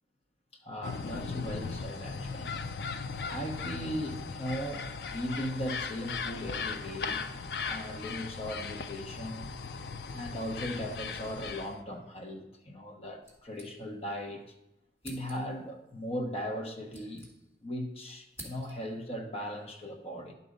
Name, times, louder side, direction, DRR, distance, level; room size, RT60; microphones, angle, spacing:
voice 1, 0.6-2.6 3.3-7.3 7.6-9.5 10.1-14.5 15.0-17.3 17.6-20.3, equal, 35° left, 2 dB, 1.0 m, -38 dB
sound 1, 0.8-11.8, left 5 dB, 65° left, 0.4 m, -38 dB
sound 2, 13.2-14.2 14.5-14.6 15.0-15.7 16.5-17.8 18.0-19.0, right 1 dB, 15° left, 1.8 m, -51 dB
11.0 x 4.0 x 5.1 m, 0.89 s
head